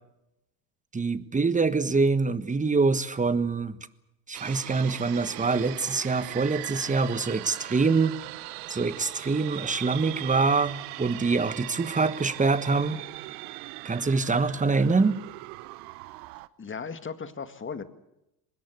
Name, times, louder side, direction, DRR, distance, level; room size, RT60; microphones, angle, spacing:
voice 1, 0.9-3.8 4.3-8.1 8.7-13.0 13.8-15.2, right 4 dB, 15° right, 14 dB, 1.3 m, -25 dB
sound 1, 4.3-16.5, right 20 dB, 65° right, 1.0 m, -40 dB
voice 2, 16.6-17.8, left 5 dB, 25° left, 10 dB, 2.1 m, -36 dB
24.5 x 20.0 x 8.2 m, 0.87 s
hypercardioid pair, 70°, 50 cm